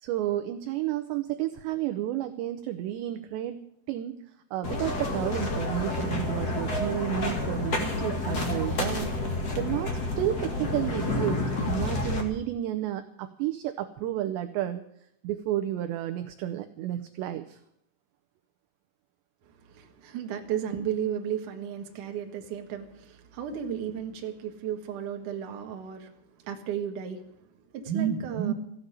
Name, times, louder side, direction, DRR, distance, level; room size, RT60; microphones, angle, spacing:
voice 1, 0.0-3.6 3.9-4.1 4.5-14.8 15.2-17.6, right 12 dB, 80° right, 2.6 m, -31 dB
sound 1, 4.6-12.2, left 2 dB, 85° left, 0.8 m, -29 dB
voice 2, 19.4-28.5, right 9 dB, 55° right, 2.4 m, -33 dB
15.5 x 8.2 x 9.9 m
omnidirectional pair, 5.7 m